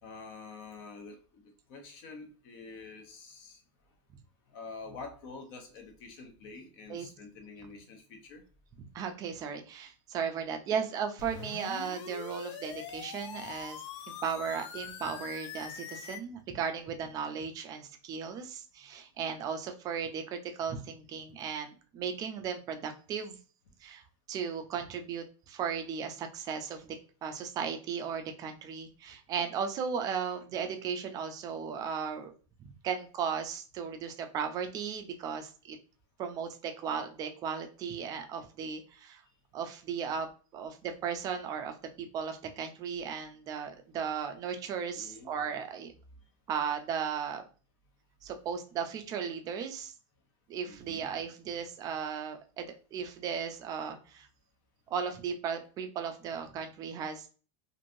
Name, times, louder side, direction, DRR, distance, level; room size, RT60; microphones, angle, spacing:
voice 1, 0.0-3.6 4.5-8.4 10.7-10.8 45.0-45.3 50.6-51.1, left 4 dB, 50° left, 3 dB, 0.8 m, -47 dB
voice 2, 8.9-13.8 14.1-23.4 23.8-24.0 24.3-27.0 27.2-32.3 32.8-35.8 36.2-39.2 39.5-40.3 40.5-45.9 46.5-47.4 48.2-49.9 50.5-54.3 54.9-57.3, right 7 dB, 25° right, 6 dB, 0.4 m, -36 dB
sound 1, 11.2-16.2, left 8 dB, 75° left, 0.5 m, -43 dB
3.0 x 2.5 x 2.5 m, 0.37 s
supercardioid pair, 160°, 16 cm